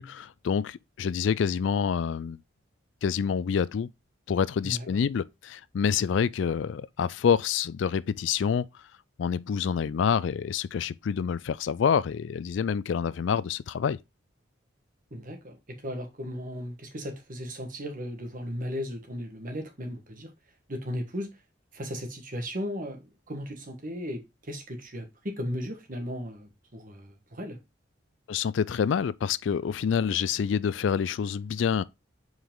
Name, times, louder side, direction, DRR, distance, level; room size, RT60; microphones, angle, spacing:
voice 1, 0.0-2.4 3.0-3.9 4.3-8.7 9.2-14.0 28.3-31.8, left 7 dB, 65° left, 0.3 m, -27 dB
voice 2, 15.1-20.3 20.7-21.3 21.7-27.6, equal, 45° right, 1.5 m, -36 dB
5.3 x 4.8 x 3.7 m
head